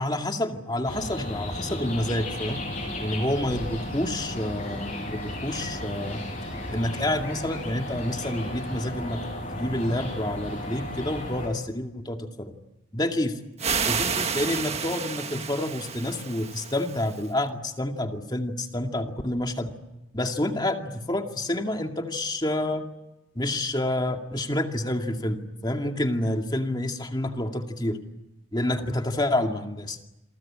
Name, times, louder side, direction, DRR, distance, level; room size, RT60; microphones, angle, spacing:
voice 1, 0.0-2.6 3.0-6.2 6.7-9.2 9.5-12.5 12.9-13.4 13.9-19.7 20.1-22.9 23.4-28.0 28.5-30.0, left 1 dB, 20° left, 4 dB, 2.3 m, -28 dB
sound 1, 0.8-11.5, left 1 dB, 40° left, 7.7 m, -34 dB
sound 2, 13.6-17.3, right 6 dB, 30° right, 1.6 m, -30 dB
28.5 x 22.5 x 8.7 m, 0.93 s
head